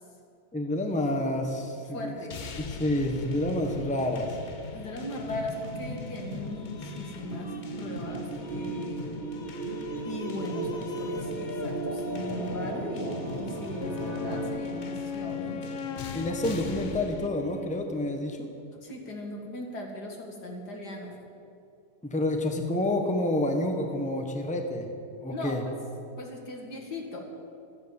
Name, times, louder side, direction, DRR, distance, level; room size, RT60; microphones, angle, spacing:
voice 1, 0.5-2.1 2.6-4.4 16.1-18.5 22.0-24.9 25.2-25.6, left 1 dB, 5° left, 3 dB, 1.1 m, -29 dB
voice 2, 1.9-2.4 4.7-9.0 10.0-15.8 18.8-21.2 25.3-25.7 26.2-27.2, left 1 dB, 80° left, 1 dB, 2.7 m, -38 dB
sound 1, 2.3-17.3, left 4 dB, 45° left, 0.6 m, -41 dB
sound 2, 5.2-14.5, right 2 dB, 35° right, 2.0 m, -36 dB
Wind instrument woodwind instrument, 13.8-18.2, left 6 dB, 60° left, 1.1 m, -37 dB
13.5 x 10.5 x 8.8 m, 2.5 s
omnidirectional pair, 1.7 m